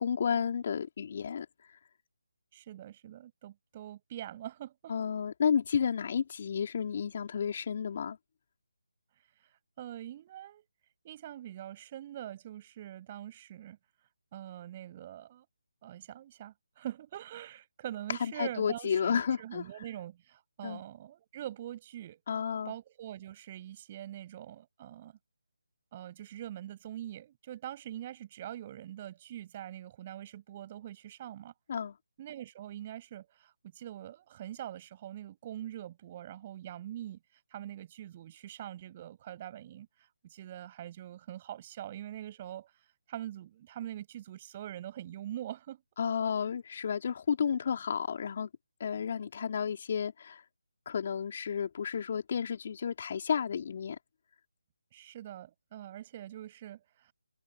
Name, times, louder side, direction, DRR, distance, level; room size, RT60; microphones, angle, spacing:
voice 1, 0.0-1.5 4.9-8.2 18.1-19.6 20.6-20.8 22.3-22.7 31.7-31.9 46.0-48.5 48.8-50.4 50.9-54.0, left 7 dB, 40° left, 4.0 m, -32 dB
voice 2, 2.5-5.0 9.8-10.7 11.0-13.8 14.3-15.5 15.8-22.2 22.7-25.1 25.9-31.5 32.2-37.2 37.5-45.8 54.9-57.1, right 12 dB, 30° right, 7.3 m, -43 dB
figure-of-eight pair, 155°, 0 cm